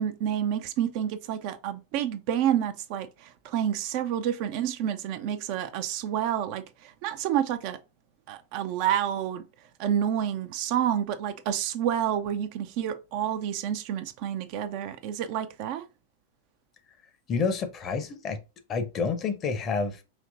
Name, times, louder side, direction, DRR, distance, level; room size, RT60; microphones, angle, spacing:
voice 1, 0.0-7.8 8.3-9.4 9.8-15.9, right 10 dB, 45° right, 0.5 m, -29 dB
voice 2, 17.3-18.4 18.7-20.0, left 5 dB, 30° left, 0.8 m, -28 dB
5.2 x 2.8 x 2.6 m
figure-of-eight pair, 90°, 0 cm